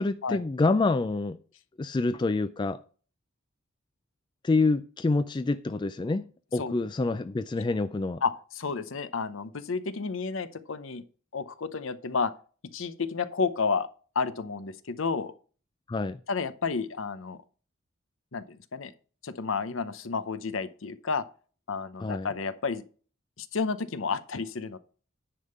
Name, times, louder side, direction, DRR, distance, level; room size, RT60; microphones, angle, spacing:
voice 1, 0.0-1.4 1.8-2.8 4.4-8.2 15.9-16.2 22.0-22.3, left 3 dB, 20° left, 0.3 m, -27 dB
voice 2, 8.2-11.0 11.3-12.3 12.7-13.9 14.1-15.3 16.3-17.4 18.3-18.9 19.2-21.2 21.7-22.8 23.4-24.8, left 5 dB, 70° left, 0.7 m, -31 dB
10.0 x 3.6 x 6.7 m
head